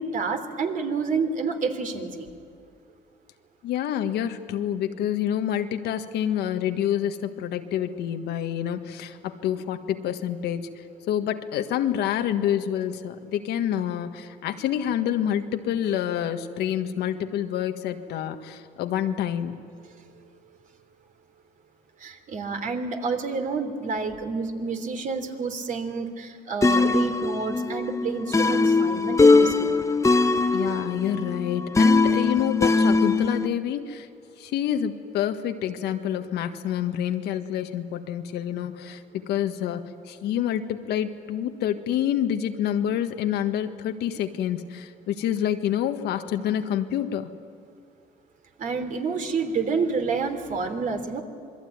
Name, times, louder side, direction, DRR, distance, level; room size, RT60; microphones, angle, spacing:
voice 1, 0.0-2.3 22.0-29.8 48.6-51.2, right 4 dB, 50° right, 6 dB, 3.1 m, -29 dB
voice 2, 3.6-19.6 30.5-34.1 34.4-47.3, left 10 dB, 80° left, 7 dB, 1.6 m, -27 dB
sound 1, 26.6-33.5, left 3 dB, 20° left, 1.0 m, -21 dB
26.5 x 22.0 x 9.6 m, 2.4 s
cardioid pair, 110°, 17 cm